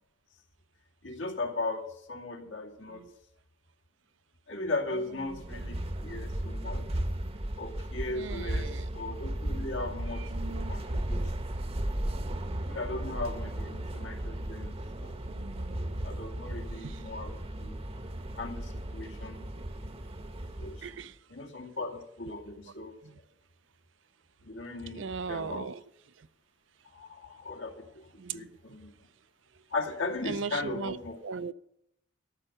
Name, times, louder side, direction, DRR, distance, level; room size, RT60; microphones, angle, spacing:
voice 1, 1.0-3.1 4.5-5.8 6.0-6.8 7.6-8.7 8.9-11.2 12.6-15.1 16.0-17.3 17.6-17.8 18.4-19.5 20.6-20.9 21.3-23.0 24.4-25.7 26.9-28.1 28.3-28.9 29.7-31.2, left 2 dB, 85° left, 2.3 m, -37 dB
sound 1, 5.3-21.0, right 1 dB, 30° right, 0.8 m, -35 dB
voice 2, 8.1-8.8 10.2-11.4 15.2-16.2 16.5-17.0 20.8-21.2 23.0-23.2 24.9-25.8 26.2-26.3 28.2-28.6 30.3-31.0 31.2-31.5, right 5 dB, 75° right, 0.5 m, -40 dB
13.0 x 6.7 x 8.8 m
head